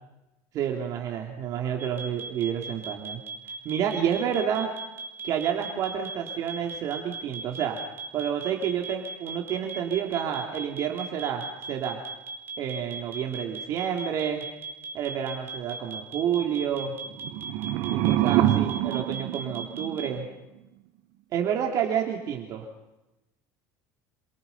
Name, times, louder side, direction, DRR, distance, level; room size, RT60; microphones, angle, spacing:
voice 1, 0.5-3.2 3.6-4.7 5.2-7.8 8.1-12.0 12.6-14.4 14.9-16.9 17.9-20.3 21.3-22.6, right 8 dB, 45° right, 1 dB, 3.2 m, -29 dB
sound 1, 1.8-20.1, right 4 dB, 30° right, 4.3 m, -37 dB
sound 2, 17.1-20.2, right 13 dB, 65° right, 1.5 m, -26 dB
28.5 x 26.5 x 5.6 m, 0.95 s
cardioid pair, 150°, 8 cm